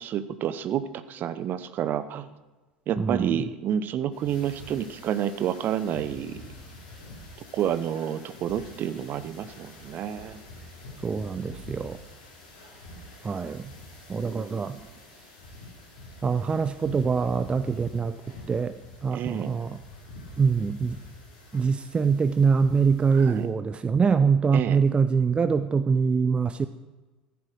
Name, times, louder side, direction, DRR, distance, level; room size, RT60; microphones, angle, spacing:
voice 1, 0.0-2.3 2.9-6.4 7.5-10.4 14.2-14.7 19.1-19.5 23.1-23.5 24.5-24.8, right 10 dB, 45° right, 13 dB, 0.9 m, -29 dB
voice 2, 3.0-3.4 11.0-12.0 13.2-13.7 14.1-14.8 16.2-18.2 18.5-18.7 19.0-19.8 20.4-21.0 21.5-26.7, right 5 dB, 25° right, 12 dB, 0.6 m, -24 dB
sound 1, 4.1-23.4, left 1 dB, 65° left, 4.0 m, -47 dB
14.0 x 9.4 x 6.3 m, 1.2 s
figure-of-eight pair, 65°, 5 cm